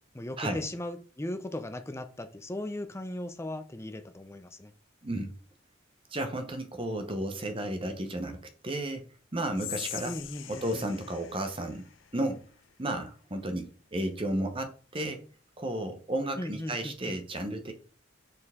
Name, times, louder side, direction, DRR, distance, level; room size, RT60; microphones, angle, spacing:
voice 1, 0.1-4.7 10.0-10.9 16.4-17.2, left 1 dB, 15° left, 0.5 m, -37 dB
voice 2, 6.1-9.1 9.3-10.1 10.5-11.8 12.1-12.4 12.8-15.2 15.6-17.7, right 1 dB, 25° right, 0.8 m, -33 dB
Whispering, 9.5-12.7, left 14 dB, 70° left, 0.5 m, -43 dB
6.7 x 4.4 x 3.6 m
head